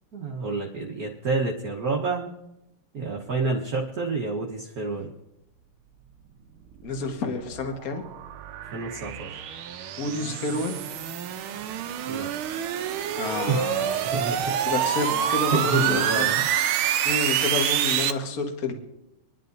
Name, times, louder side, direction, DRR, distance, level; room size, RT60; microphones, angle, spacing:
voice 1, 0.1-2.3 2.9-5.1 8.7-9.4 12.1-12.3 13.5-13.6 14.1-14.5 15.1-16.5, right 4 dB, 50° right, -1 dB, 1.5 m, -28 dB
voice 2, 6.8-8.0 10.0-10.8 13.2-14.0 14.7-16.2 17.0-18.7, left 3 dB, 45° left, 3 dB, 1.7 m, -29 dB
sound 1, 6.8-18.1, right 10 dB, 75° right, 1.5 m, -27 dB
26.0 x 10.5 x 2.7 m, 0.89 s
omnidirectional pair, 2.4 m